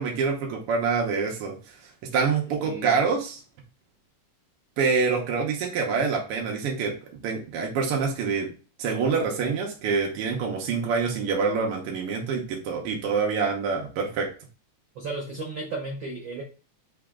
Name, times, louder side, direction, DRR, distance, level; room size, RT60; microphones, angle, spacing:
voice 1, 0.0-3.4 4.8-6.9 7.2-8.5 8.8-14.3, right 5 dB, 70° right, 0 dB, 1.4 m, -26 dB
voice 2, 2.6-3.0 14.9-16.4, right 3 dB, 90° right, 0 dB, 1.0 m, -34 dB
4.9 x 2.9 x 3.6 m, 0.35 s
omnidirectional pair, 3.5 m